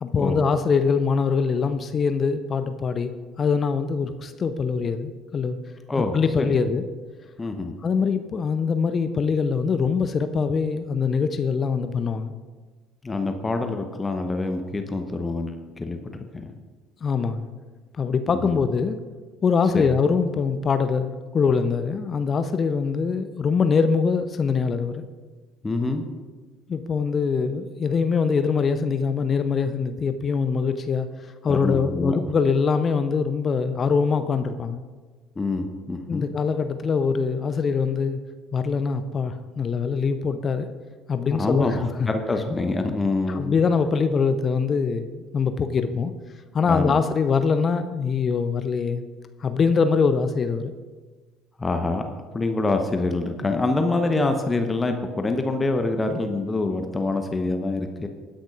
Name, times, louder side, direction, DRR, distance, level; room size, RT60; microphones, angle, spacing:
voice 1, 0.0-3.1 3.4-5.6 6.0-6.8 7.8-12.3 17.0-17.5 17.9-19.0 19.4-25.1 26.7-31.1 31.4-34.8 36.1-38.2 38.5-40.7 41.1-42.1 43.3-46.1 46.5-49.0 49.4-50.7, left 5 dB, 35° left, 10 dB, 0.7 m, -23 dB
voice 2, 5.9-6.5 7.4-7.7 13.0-16.0 16.3-16.5 18.3-18.6 19.7-20.0 25.6-26.0 31.5-32.2 35.4-36.3 41.3-43.6 46.7-47.0 51.6-58.1, left 2 dB, 20° left, 6 dB, 1.1 m, -26 dB
20.0 x 10.0 x 2.5 m, 1.4 s
figure-of-eight pair, 60°, 0 cm